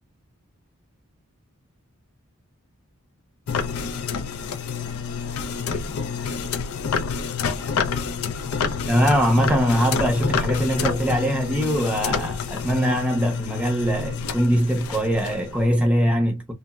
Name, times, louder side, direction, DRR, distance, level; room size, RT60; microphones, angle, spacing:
sound 1, 3.5-15.7, left 5 dB, 80° left, 0.4 m, -28 dB
voice 1, 8.9-16.5, equal, 5° right, 0.6 m, -22 dB
3.2 x 2.0 x 2.2 m
head